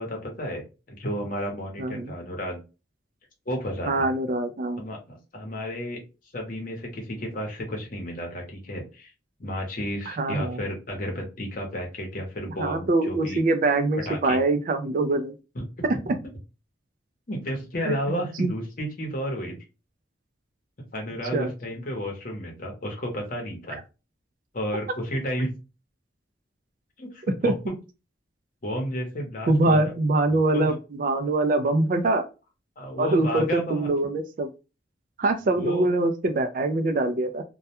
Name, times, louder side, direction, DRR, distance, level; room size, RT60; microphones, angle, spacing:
voice 1, 0.0-2.6 3.5-4.1 4.8-6.0 6.3-9.1 9.4-13.4 14.1-14.4 15.5-16.2 17.3-19.6 20.9-23.8 24.5-25.5 27.0-27.7 28.6-29.9 30.3-30.7 32.8-33.9 35.5-35.9, equal, 45° left, 1 dB, 0.8 m, -32 dB
voice 2, 1.8-2.1 3.9-4.8 10.1-10.6 12.4-15.4 16.1-16.2 17.8-18.0 18.4-18.5 21.3-21.5 27.4-27.5 29.5-32.3 33.0-34.5 35.2-37.4, right 2 dB, 45° right, 8 dB, 0.3 m, -24 dB
2.2 x 2.1 x 2.8 m, 0.30 s
head